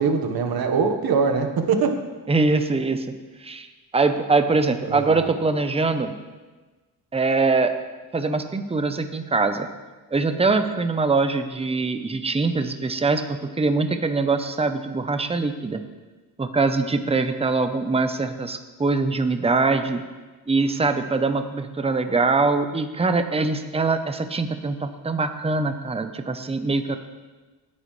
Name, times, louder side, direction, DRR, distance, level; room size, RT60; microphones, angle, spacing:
voice 1, 0.0-2.0 4.9-5.3, right 5 dB, 70° right, 5 dB, 1.6 m, -22 dB
voice 2, 2.3-3.1 3.4-3.7 3.9-6.1 7.1-7.8 8.1-9.7 10.1-15.8 16.4-20.0 20.5-27.0, right 3 dB, 15° right, 8 dB, 0.8 m, -23 dB
18.0 x 9.8 x 3.3 m, 1.3 s
cardioid pair, 110°, 38 cm